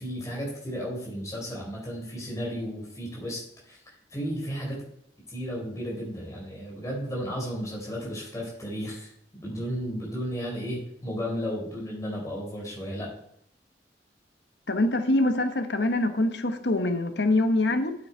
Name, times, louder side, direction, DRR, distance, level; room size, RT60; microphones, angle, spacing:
voice 1, 0.0-3.8 4.1-4.8 5.3-9.1 9.4-13.1, equal, 20° left, -3 dB, 4.1 m, -34 dB
voice 2, 14.7-17.9, left 2 dB, 75° left, 8 dB, 1.0 m, -24 dB
9.1 x 8.6 x 4.5 m, 0.70 s
head